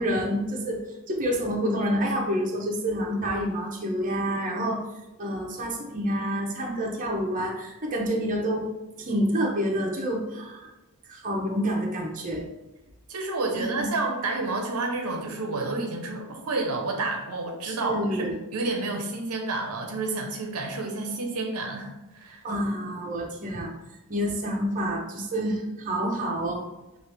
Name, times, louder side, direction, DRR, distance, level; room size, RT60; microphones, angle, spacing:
voice 1, 0.0-4.8 5.2-8.7 9.0-10.7 11.1-12.4 13.6-13.9 17.6-18.3 22.4-23.7 24.1-26.6, equal, 35° right, -1 dB, 0.8 m, -28 dB
voice 2, 13.1-22.4, right 3 dB, 80° right, 2 dB, 0.7 m, -30 dB
5.7 x 2.5 x 3.3 m, 1.0 s
head